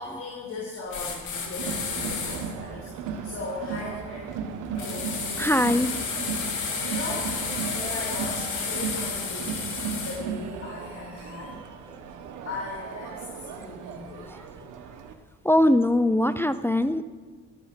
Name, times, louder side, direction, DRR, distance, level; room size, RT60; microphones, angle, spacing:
voice 1, 0.0-4.3 4.7-5.1 6.3-7.3 7.7-11.6 12.4-14.3, left 2 dB, 50° left, -4 dB, 4.4 m, -38 dB
sound 1, 0.9-2.4 4.8-10.2, left 5 dB, 75° left, 3.5 m, -32 dB
Crowd, 1.6-15.1, right 6 dB, 85° right, 1.3 m, -36 dB
voice 2, 5.4-5.9 15.5-17.0, left 1 dB, 10° left, 11 dB, 0.5 m, -21 dB
13.5 x 12.5 x 6.0 m, 1.4 s
cardioid pair, 90°, 30 cm